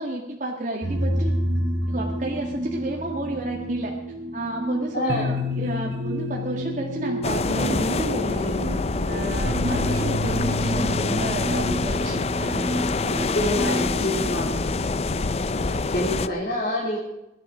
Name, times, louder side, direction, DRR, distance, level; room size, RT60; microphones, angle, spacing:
voice 1, 0.0-1.3 1.9-3.9 4.3-8.6 9.1-12.8 13.1-13.8 14.1-14.3, right 1 dB, 45° right, 0 dB, 1.9 m, -31 dB
sound 1, 0.8-16.4, equal, 75° right, 2.9 m, -30 dB
voice 2, 4.9-5.2 13.1-14.6 15.9-17.0, left 1 dB, 60° left, -5 dB, 4.0 m, -27 dB
sound 2, 7.2-16.3, left 3 dB, 35° left, 0.5 m, -26 dB
23.0 x 10.5 x 5.1 m, 0.95 s
head